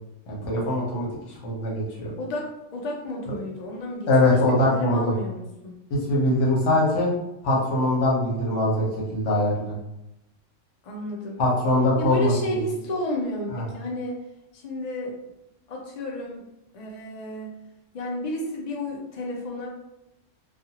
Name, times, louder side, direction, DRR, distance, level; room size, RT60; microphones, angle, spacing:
voice 1, 0.3-1.1 1.4-2.1 4.1-5.1 6.1-7.1 7.4-9.7 11.4-12.3 13.5-13.6, left 1 dB, 70° left, -4 dB, 1.2 m, -22 dB
voice 2, 2.2-5.8 10.8-11.4 12.0-14.2 14.5-15.2 15.7-16.5 16.7-17.6 17.9-19.7, left 1 dB, 50° left, -1 dB, 0.5 m, -32 dB
2.5 x 2.4 x 2.8 m, 0.90 s
omnidirectional pair, 1.3 m